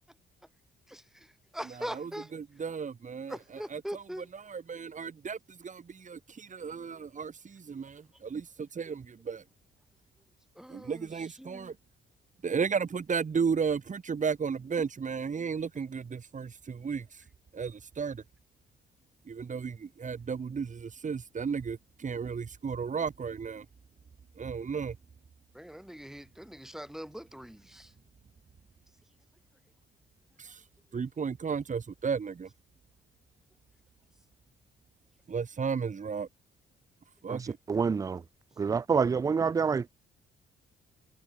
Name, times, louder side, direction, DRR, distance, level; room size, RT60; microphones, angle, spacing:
voice 1, 0.9-2.3 3.3-4.3 10.6-11.1 11.4-11.7 25.5-27.9, equal, ahead, 6.1 m, -42 dB
voice 2, 1.7-4.0 4.3-9.4 10.7-11.8 12.4-17.2 17.5-18.2 19.3-23.7 24.4-25.0 30.4-30.6 30.9-32.5 35.3-36.3 37.2-37.6, right 6 dB, 40° right, 3.4 m, -34 dB
voice 3, 37.7-38.2 38.6-39.9, right 5 dB, 20° right, 0.3 m, -27 dB
cardioid pair, 90°, 20 cm